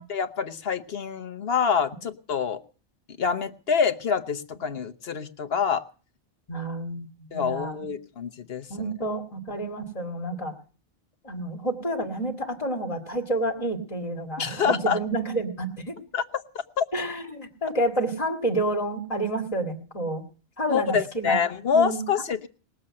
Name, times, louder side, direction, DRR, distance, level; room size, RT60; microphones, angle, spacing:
voice 1, 0.0-2.6 3.2-5.8 7.3-8.9 14.4-15.0 16.1-16.2 16.8-16.9 20.7-22.5, left 6 dB, 70° left, 9 dB, 1.3 m, -26 dB
voice 2, 6.5-7.9 8.7-10.5 11.2-16.0 16.9-20.3 20.6-21.4 21.7-22.0, right 1 dB, 35° left, 2 dB, 2.0 m, -29 dB
19.5 x 7.4 x 8.7 m, 0.39 s
omnidirectional pair, 1.0 m